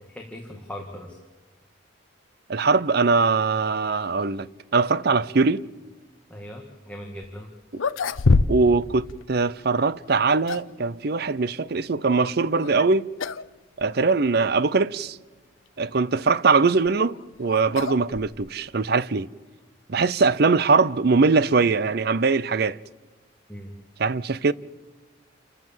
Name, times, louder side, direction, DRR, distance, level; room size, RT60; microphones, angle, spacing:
voice 1, 0.1-1.2 6.3-7.5 23.5-23.7, equal, 5° left, 1.9 m, -39 dB
voice 2, 2.5-4.5 4.7-5.6 8.5-13.1 13.8-15.2 15.8-19.3 19.9-22.8 24.0-24.5, right 4 dB, 50° right, 0.5 m, -21 dB
sound 1, 7.2-7.3 7.7-8.8 9.1-9.2 10.1-10.8 12.6-12.9 13.2-13.5 13.8-13.9 14.7-14.8 16.6-18.7, left 3 dB, 85° left, 0.6 m, -25 dB
29.0 x 14.0 x 7.5 m
head